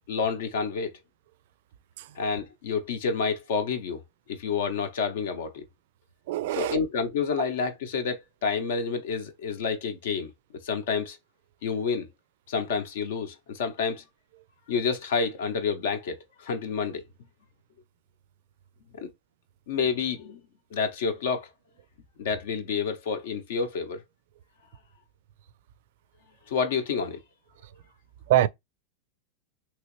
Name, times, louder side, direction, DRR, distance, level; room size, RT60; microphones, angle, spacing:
voice 1, 0.1-0.9 2.2-4.0 4.3-5.6 6.5-10.3 10.6-11.2 11.6-12.1 12.5-14.0 14.7-17.0 18.9-19.1 19.7-20.4 20.7-21.5 22.2-24.0 26.5-27.2, left 5 dB, 75° left, 0.8 m, -29 dB
voice 2, 6.3-6.8 28.3-28.5, right 13 dB, 65° right, 0.3 m, -23 dB
3.0 x 3.0 x 3.0 m
supercardioid pair, 150°, 0 cm